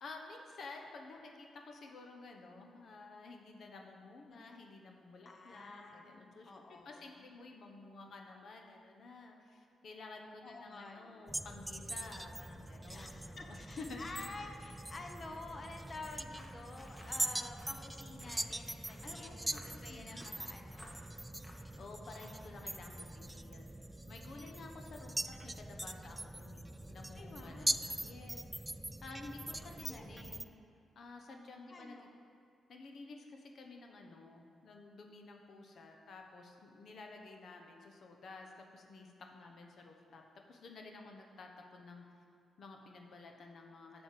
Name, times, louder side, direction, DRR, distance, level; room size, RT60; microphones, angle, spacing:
voice 1, 0.0-6.5 6.8-14.1 19.0-20.2 21.7-23.7 24.1-28.4 29.0-30.5 30.9-32.1 32.7-40.2 40.5-42.0 42.6-44.0, left 3 dB, 65° left, 2 dB, 1.0 m, -52 dB
voice 2, 5.2-7.3 10.4-11.3 12.9-19.4 19.6-21.0 24.3-24.6 27.1-27.9 29.8-30.4 31.7-32.1, left 2 dB, 40° left, 3 dB, 1.0 m, -50 dB
sound 1, 11.3-30.5, right 1 dB, 15° right, 0.4 m, -42 dB
sound 2, 16.1-22.5, left 1 dB, 20° left, 1.6 m, -60 dB
7.0 x 6.5 x 7.7 m, 2.5 s
cardioid pair, 70°, 0 cm